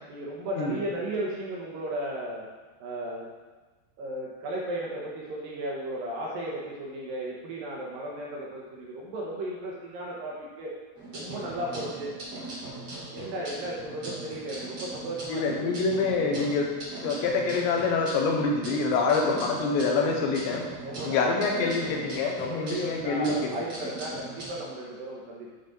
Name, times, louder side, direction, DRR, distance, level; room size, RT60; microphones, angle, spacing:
voice 1, 0.1-2.5 2.8-3.3 4.0-10.7 11.1-12.1 13.1-15.7 20.8-25.5, right 1 dB, 65° right, -4 dB, 2.6 m, -35 dB
sound 1, 10.9-24.5, right 2 dB, 35° right, 3.7 m, -40 dB
voice 2, 15.3-16.7 17.0-20.7 21.0-23.5, left 4 dB, 80° left, 1 dB, 3.4 m, -26 dB
8.5 x 7.3 x 4.1 m, 1.3 s
omnidirectional pair, 5.0 m